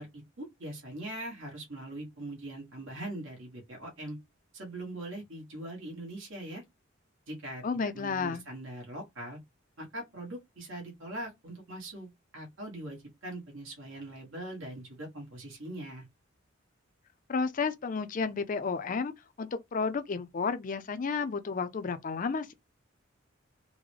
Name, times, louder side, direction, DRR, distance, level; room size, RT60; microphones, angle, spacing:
voice 1, 0.0-4.2 4.5-6.6 7.3-9.4 9.8-12.1 12.3-16.0, right 1 dB, 75° right, 1.4 m, -41 dB
voice 2, 7.6-8.4 17.3-19.1 19.4-22.5, left 5 dB, 40° left, 0.4 m, -32 dB
3.7 x 2.1 x 3.1 m
head